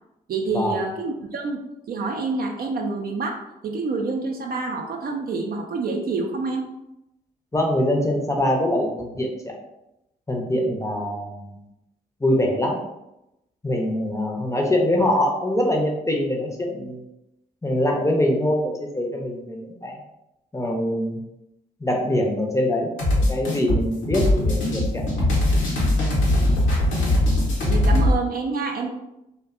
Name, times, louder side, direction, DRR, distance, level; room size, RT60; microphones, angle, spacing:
voice 1, 0.3-1.6 1.9-6.7 27.7-28.9, right 3 dB, 45° right, 2 dB, 0.5 m, -27 dB
voice 2, 7.5-9.3 10.3-11.5 12.2-12.8 13.6-17.0 17.6-20.0 20.5-21.2 21.8-22.9 23.2-25.0, left 1 dB, 15° left, 0 dB, 0.6 m, -23 dB
sound 1, 23.0-28.1, left 1 dB, 70° left, 0.8 m, -20 dB
2.5 x 2.1 x 2.4 m, 0.89 s
hypercardioid pair, 40°, 21 cm